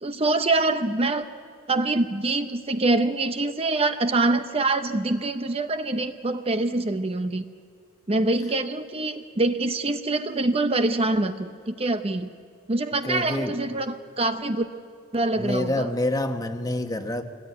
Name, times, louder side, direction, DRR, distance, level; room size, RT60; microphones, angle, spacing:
voice 1, 0.0-1.3 1.7-7.4 8.1-12.3 12.7-14.7 15.1-15.9, right 2 dB, 30° right, 9 dB, 0.7 m, -25 dB
voice 2, 13.0-13.5 15.4-17.2, left 1 dB, 15° left, 7 dB, 1.2 m, -27 dB
24.0 x 19.0 x 9.3 m, 2.2 s
head